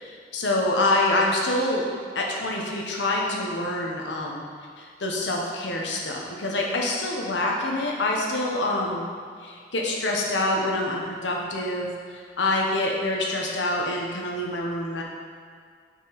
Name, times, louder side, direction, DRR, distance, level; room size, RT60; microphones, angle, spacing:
voice 1, 0.0-1.8 2.1-4.5 4.8-9.0 9.4-15.0, left 2 dB, 85° left, -1 dB, 1.0 m, -26 dB
6.5 x 4.7 x 4.1 m, 2.1 s
head